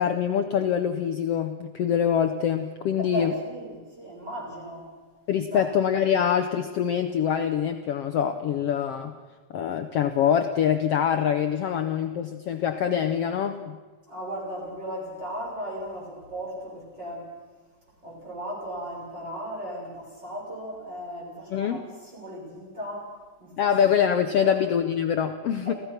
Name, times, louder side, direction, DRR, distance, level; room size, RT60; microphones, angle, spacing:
voice 1, 0.0-3.3 5.3-9.1 9.5-13.8 21.5-21.8 23.6-25.7, left 8 dB, 85° left, 7 dB, 1.3 m, -24 dB
voice 2, 3.0-4.9 5.5-5.7 14.1-17.3 18.0-23.1 23.4-23.7 24.3-24.5 25.7-25.8, equal, 30° right, -4 dB, 7.2 m, -36 dB
29.0 x 16.0 x 5.9 m, 1.4 s
omnidirectional pair, 3.9 m